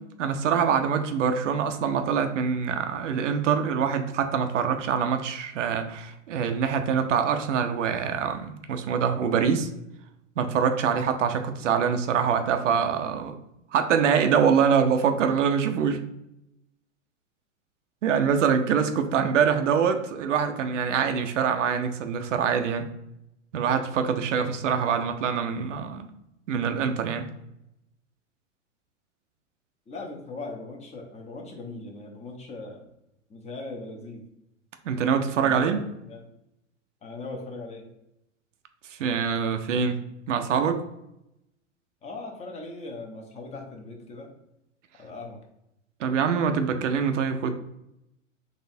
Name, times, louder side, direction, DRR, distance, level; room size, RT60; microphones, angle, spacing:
voice 1, 0.0-9.7 10.4-13.4 13.7-16.0 18.0-22.9 23.5-26.1 26.5-27.3 34.8-35.8 38.9-40.0 40.3-40.8 46.0-47.5, right 7 dB, 75° right, 7 dB, 0.6 m, -24 dB
voice 2, 29.9-32.9 33.3-34.2 35.4-36.2 37.0-37.9 42.0-44.3 45.0-45.4, left 3 dB, 20° left, 1 dB, 0.7 m, -39 dB
4.1 x 3.2 x 2.6 m, 0.85 s
hypercardioid pair, 110°, 37 cm